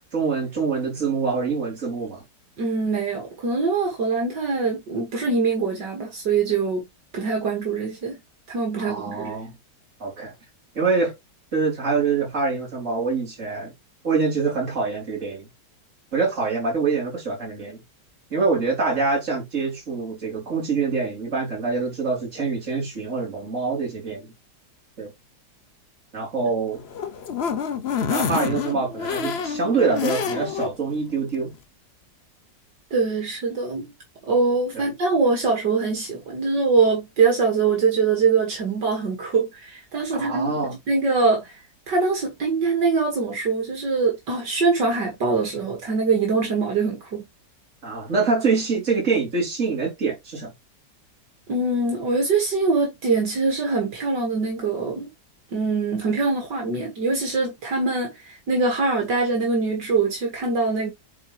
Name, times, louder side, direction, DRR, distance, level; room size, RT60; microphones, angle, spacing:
voice 1, 0.1-2.2 8.8-9.5 10.0-10.3 10.8-11.1 11.5-13.7 14.0-15.5 16.1-17.8 18.3-24.3 25.0-25.1 26.1-26.8 28.1-31.5 34.7-34.9 40.1-40.7 47.8-50.5, right 4 dB, 45° right, 4.1 m, -25 dB
voice 2, 2.6-6.8 7.1-8.2 8.5-9.3 32.9-33.9 34.3-41.6 41.9-47.3 51.5-55.1 55.5-60.9, right 4 dB, 75° right, 2.7 m, -23 dB
sound 1, 26.7-30.7 31.1-31.2 31.5-31.6, left 7 dB, 55° left, 0.8 m, -27 dB
9.1 x 4.4 x 3.2 m
omnidirectional pair, 1.9 m